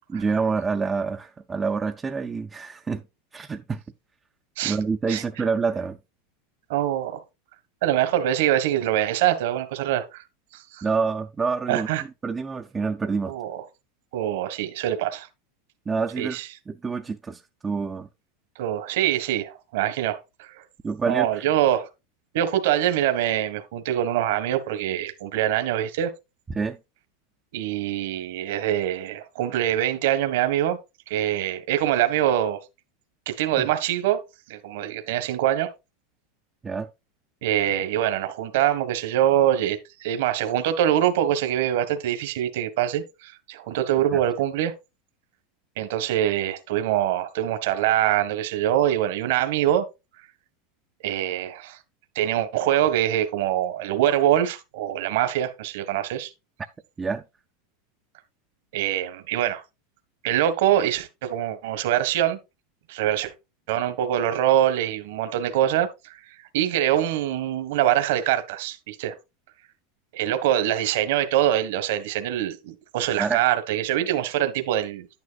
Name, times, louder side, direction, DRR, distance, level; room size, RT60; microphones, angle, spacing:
voice 1, 0.1-3.0 3.3-3.8 4.6-6.0 10.8-13.3 15.9-16.4 16.7-18.1 20.8-21.3 26.5-26.8 33.6-33.7 36.6-36.9 44.1-44.2 57.0-57.2 73.2-73.4, right 5 dB, 15° right, 0.5 m, -27 dB
voice 2, 6.7-7.2 7.8-10.2 10.5-10.9 11.7-12.0 13.3-13.6 14.1-15.3 16.2-16.5 18.6-20.6 21.1-21.9 22.3-26.1 27.5-30.8 31.1-32.6 33.3-34.2 34.5-35.7 37.4-44.7 45.8-49.9 51.0-51.8 52.1-56.3 58.7-59.6 60.2-62.4 62.9-63.3 63.7-66.2 66.5-69.1 70.1-75.2, right 11 dB, 65° right, 1.4 m, -24 dB
10.5 x 9.5 x 2.4 m
supercardioid pair, 160°, 0 cm